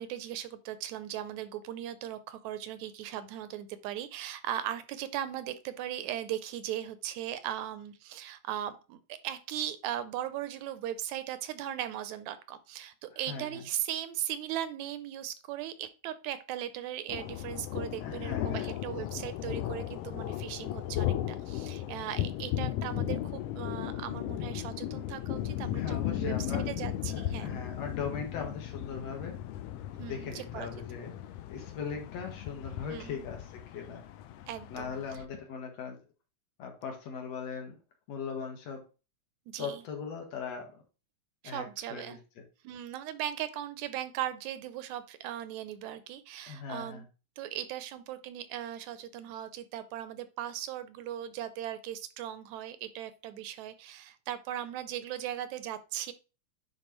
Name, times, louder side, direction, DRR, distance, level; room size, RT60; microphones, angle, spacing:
voice 1, 0.0-27.5 30.0-30.7 32.9-33.2 34.5-35.0 39.5-39.8 41.4-42.2 42.6-47.0 47.4-56.1, right 11 dB, 80° right, 12 dB, 1.9 m, -38 dB
voice 2, 13.1-13.6 18.0-18.7 25.7-26.6 27.1-29.4 30.0-31.1 31.5-34.0 34.7-36.0 36.6-37.8 38.1-38.8 39.6-40.8 41.4-41.6 41.9-42.4 46.5-47.0, left 6 dB, 65° left, 2 dB, 2.4 m, -39 dB
sound 1, 17.1-35.2, left 12 dB, 85° left, 1.4 m, -36 dB
9.7 x 3.9 x 3.1 m, 0.32 s
omnidirectional pair, 3.3 m